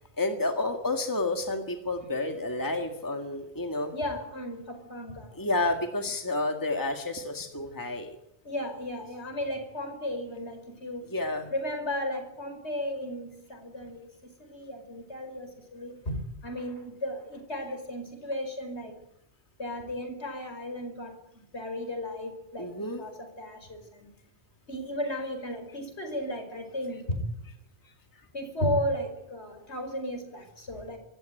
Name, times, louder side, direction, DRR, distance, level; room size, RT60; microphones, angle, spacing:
voice 1, 0.2-3.9 5.3-8.1 11.1-11.5 22.6-23.0, left 2 dB, 20° left, 4 dB, 1.9 m, -30 dB
voice 2, 3.9-5.4 8.4-11.1 11.5-14.0 14.4-19.0 19.6-22.7 23.0-24.1 24.7-27.2 28.3-31.0, left 1 dB, 80° left, 6 dB, 5.2 m, -34 dB
25.5 x 14.5 x 9.2 m, 0.83 s
omnidirectional pair, 1.1 m